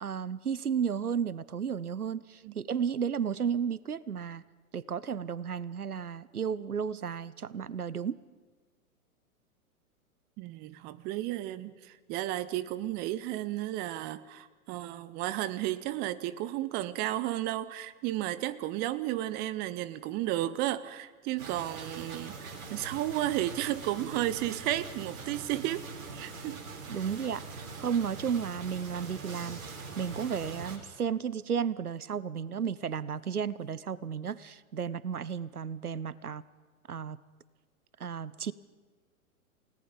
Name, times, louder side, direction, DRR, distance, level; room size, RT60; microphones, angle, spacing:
voice 1, 0.0-4.4 4.7-8.1 26.9-29.6 30.0-36.4 36.9-37.2 38.0-38.5, right 7 dB, 80° right, 20 dB, 0.9 m, -33 dB
voice 2, 10.4-25.9 26.1-26.6 26.9-27.1, right 14 dB, 20° right, 16 dB, 0.7 m, -33 dB
sound 1, 21.4-30.8, right 4 dB, 60° right, 4.2 m, -43 dB
29.5 x 18.0 x 5.2 m, 1.4 s
figure-of-eight pair, 105°, 44 cm